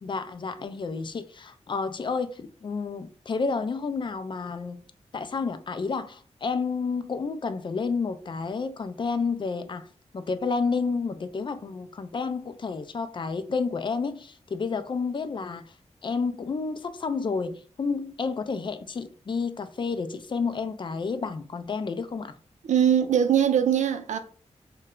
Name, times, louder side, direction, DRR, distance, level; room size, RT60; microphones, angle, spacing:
voice 1, 0.0-4.8 5.1-9.9 10.1-15.7 16.0-22.4, left 4 dB, 40° left, 0.4 m, -30 dB
voice 2, 22.7-24.2, right 9 dB, 85° right, 0.5 m, -21 dB
3.1 x 2.2 x 3.6 m
wide cardioid pair, 95°, 12 cm